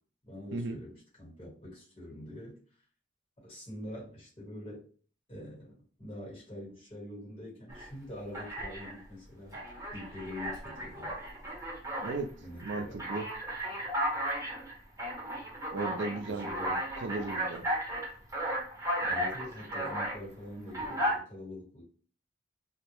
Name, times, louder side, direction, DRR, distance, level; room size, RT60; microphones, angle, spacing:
voice 1, 0.2-2.6 3.4-4.9 5.3-5.7 6.0-9.6 9.9-11.2 12.4-13.0 16.2-16.8 19.1-21.8, left 1 dB, 30° left, 1.2 m, -44 dB
Alarm, 7.7-7.9 8.3-9.0 9.5-12.2 12.6-20.2 20.7-21.2, right 1 dB, 20° right, 0.8 m, -35 dB
voice 2, 12.0-12.3 12.6-13.2 15.7-16.5 17.0-17.7, right 3 dB, 70° right, 0.4 m, -35 dB
2.2 x 2.0 x 3.0 m
head